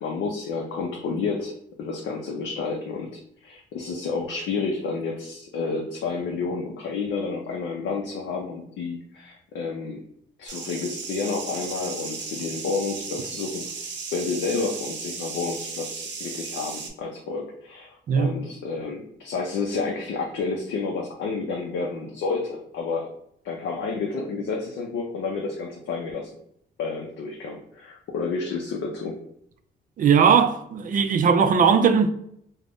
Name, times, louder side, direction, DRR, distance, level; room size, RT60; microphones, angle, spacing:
voice 1, 0.0-1.5 1.8-3.1 3.4-10.0 10.4-13.7 14.1-23.1 23.4-26.3 26.8-29.2, left 4 dB, 70° left, 0.5 m, -30 dB
sound 1, 10.5-16.9, right 5 dB, 65° right, 0.7 m, -35 dB
voice 2, 30.0-32.1, right 6 dB, 45° right, 0.4 m, -19 dB
2.5 x 2.1 x 3.4 m
cardioid pair, 90°, 20 cm